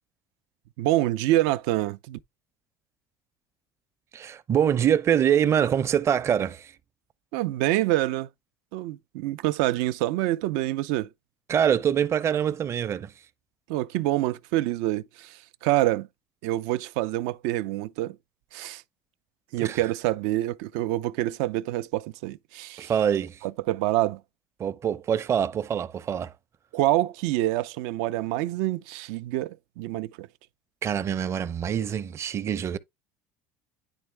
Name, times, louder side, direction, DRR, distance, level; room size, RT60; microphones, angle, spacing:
voice 1, 0.8-2.2 7.3-8.3 8.7-11.1 13.7-16.1 16.4-18.2 18.5-18.8 19.5-22.9 23.4-24.2 26.7-30.3, right 16 dB, 80° right, 0.5 m, -26 dB
voice 2, 4.1-6.7 11.5-13.1 19.6-19.8 22.8-23.4 24.6-26.3 30.8-32.8, right 9 dB, 35° right, 0.6 m, -24 dB
9.8 x 3.6 x 3.3 m
supercardioid pair, 110°, 8 cm